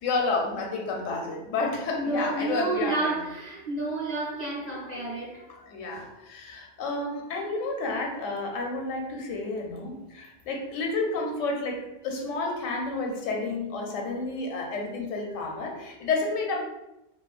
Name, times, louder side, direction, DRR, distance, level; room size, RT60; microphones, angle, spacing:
voice 1, 0.0-3.2 5.7-16.6, left 3 dB, 85° left, 1 dB, 0.9 m, -30 dB
voice 2, 1.9-5.7, right 2 dB, 45° right, -7 dB, 0.6 m, -30 dB
2.7 x 2.3 x 2.4 m, 0.92 s
omnidirectional pair, 1.3 m